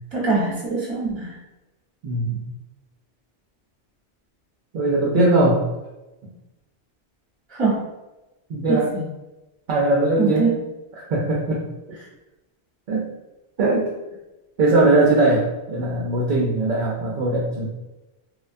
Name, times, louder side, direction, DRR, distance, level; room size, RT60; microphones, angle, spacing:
voice 1, 0.1-1.3 7.5-7.9 8.7-9.0 10.2-10.5, right 4 dB, 25° right, -6 dB, 1.0 m, -23 dB
voice 2, 2.0-2.4 4.7-5.6 8.5-8.9 9.7-10.5 11.0-11.6 12.9-13.0 13.6-13.9 14.6-17.7, right 2 dB, 60° right, -4 dB, 0.6 m, -20 dB
2.9 x 2.2 x 2.5 m, 1.0 s
omnidirectional pair, 1.1 m